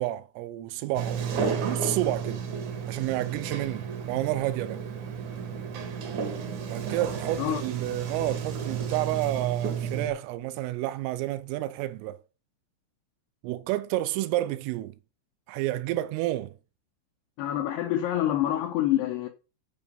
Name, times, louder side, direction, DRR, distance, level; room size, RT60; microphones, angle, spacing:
voice 1, 0.0-2.4 2.9-4.8 6.7-12.2 13.4-15.0 15.5-16.6, right 15 dB, 80° right, 3.2 m, -30 dB
Sliding door, 0.9-10.1, right 6 dB, 65° right, 2.0 m, -32 dB
voice 2, 17.4-19.3, left 12 dB, 85° left, 2.3 m, -26 dB
11.5 x 5.0 x 5.4 m
omnidirectional pair, 6.0 m